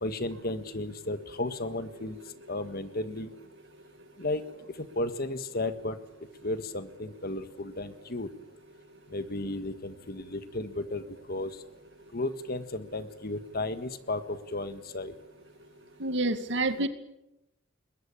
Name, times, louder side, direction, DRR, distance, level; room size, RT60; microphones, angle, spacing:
voice 1, 0.0-2.2 2.5-3.3 4.2-4.4 4.8-6.0 6.4-8.3 9.1-11.5 12.1-15.1, left 2 dB, 50° left, 10 dB, 1.7 m, -34 dB
voice 2, 16.0-16.9, right 2 dB, 65° right, 9 dB, 2.1 m, -28 dB
22.0 x 21.0 x 8.9 m, 0.91 s
head